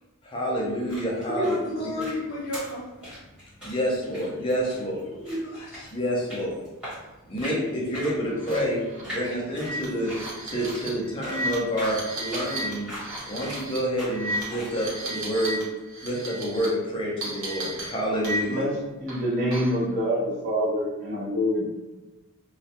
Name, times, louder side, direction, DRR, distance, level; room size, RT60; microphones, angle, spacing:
voice 1, 0.2-1.5 1.8-2.0 3.6-5.0 5.9-6.5 7.3-10.1 10.5-12.9 13.3-15.6 16.0-18.6, equal, 25° left, -4 dB, 0.5 m, -28 dB
sound 1, 0.6-14.8, equal, 5° right, 1.2 m, -42 dB
voice 2, 1.2-2.8 5.1-5.9, left 1 dB, 85° left, -6 dB, 0.8 m, -31 dB
sound 2, 8.4-8.6 8.9-9.0 9.5-15.6 15.9-16.6 17.2-18.7 19.1-19.8, equal, 65° right, 0.9 m, -34 dB
voice 3, 18.5-21.6, equal, 35° right, -10 dB, 0.6 m, -26 dB
2.3 x 2.1 x 2.8 m, 1.1 s
head